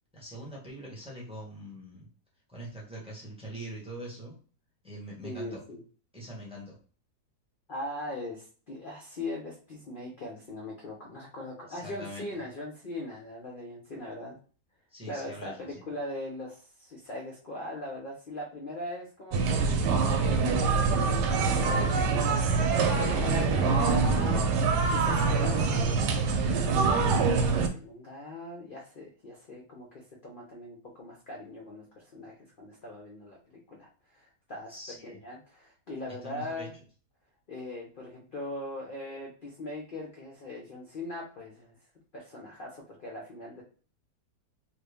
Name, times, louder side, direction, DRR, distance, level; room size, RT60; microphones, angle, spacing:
voice 1, 0.1-2.1 2.5-4.4 4.8-5.6 6.1-6.8 11.7-12.3 14.9-15.8 34.7-35.2 36.2-36.7, right 1 dB, 5° right, -4 dB, 0.9 m, -43 dB
voice 2, 5.2-5.8 7.7-14.4 15.1-24.4 24.9-34.7 35.0-36.7 37.5-41.8 42.1-43.6, left 1 dB, 50° left, -2 dB, 0.6 m, -40 dB
sound 1, 19.3-27.7, right 4 dB, 85° right, 1.2 m, -25 dB
3.2 x 2.4 x 3.4 m, 0.39 s
omnidirectional pair, 1.8 m